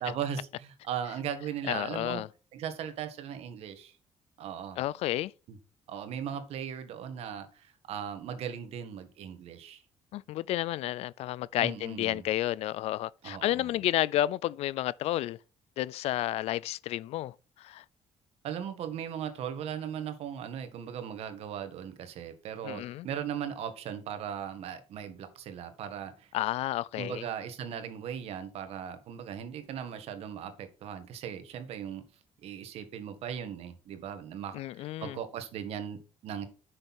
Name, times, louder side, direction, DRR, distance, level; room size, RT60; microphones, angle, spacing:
voice 1, 0.0-2.2 2.5-4.0 4.4-4.8 5.5-5.6 5.9-9.8 11.6-12.2 13.2-13.7 18.4-26.3 26.9-32.0 32.4-36.5, right 8 dB, 70° right, 1.8 m, -38 dB
voice 2, 1.7-2.3 4.8-5.3 10.1-15.4 15.8-17.8 22.6-23.1 26.3-27.3 34.5-35.2, left 14 dB, 75° left, 0.4 m, -31 dB
10.0 x 6.7 x 4.3 m
cardioid pair, 115°, 11 cm